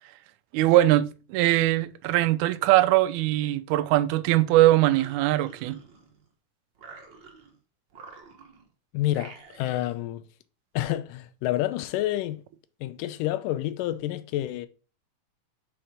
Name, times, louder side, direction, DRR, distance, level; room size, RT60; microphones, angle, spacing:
voice 1, 0.5-5.8, right 15 dB, 80° right, 1.8 m, -21 dB
sound 1, 4.8-6.3 6.7-7.6 7.9-8.7 9.1-10.0, right 4 dB, 60° right, 1.2 m, -49 dB
voice 2, 8.9-10.2 10.8-12.4 12.8-14.7, left 14 dB, 85° left, 2.2 m, -28 dB
5.8 x 4.4 x 5.0 m
omnidirectional pair, 3.7 m